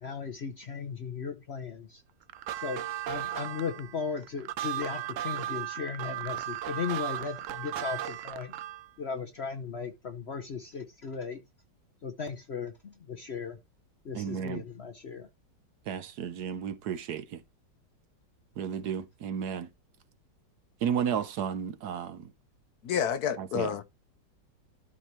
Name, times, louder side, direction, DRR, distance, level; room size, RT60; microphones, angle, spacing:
voice 1, 0.0-2.0 2.6-8.6 9.0-11.4 12.0-13.6 14.0-15.3, left 6 dB, 50° left, 0.8 m, -37 dB
sound 1, 2.3-8.9, right 12 dB, 85° right, 0.7 m, -36 dB
voice 2, 14.1-14.6 15.9-17.4 18.6-19.7 20.8-22.2 23.4-23.7, right 8 dB, 65° right, 1.2 m, -33 dB
voice 3, 22.8-23.8, left 8 dB, 70° left, 1.1 m, -29 dB
12.5 x 4.3 x 3.1 m
omnidirectional pair, 2.0 m